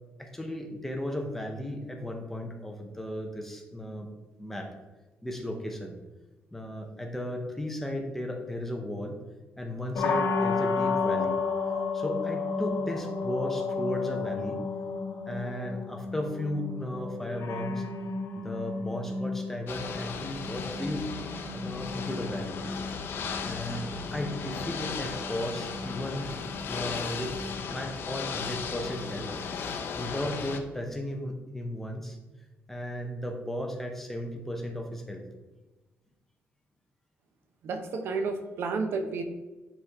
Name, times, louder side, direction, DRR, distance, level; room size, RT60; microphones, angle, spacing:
voice 1, 0.2-4.1 4.4-4.7 5.2-6.0 6.5-9.2 9.6-11.4 11.9-14.6 15.3-17.8 18.3-21.1 21.5-22.6 23.4-26.3 26.6-27.4 27.7-29.4 29.9-32.2 32.7-35.2, left 1 dB, 5° left, 3 dB, 0.8 m, -35 dB
sound 1, 9.9-29.8, left 4 dB, 70° left, 1.1 m, -34 dB
Ocean / Boat Water vehicle, 19.7-30.6, left 5 dB, 55° left, 0.7 m, -36 dB
voice 2, 37.6-39.2, right 4 dB, 60° right, 7 dB, 0.8 m, -31 dB
10.0 x 4.1 x 3.5 m, 1.2 s
cardioid pair, 170°, 5 cm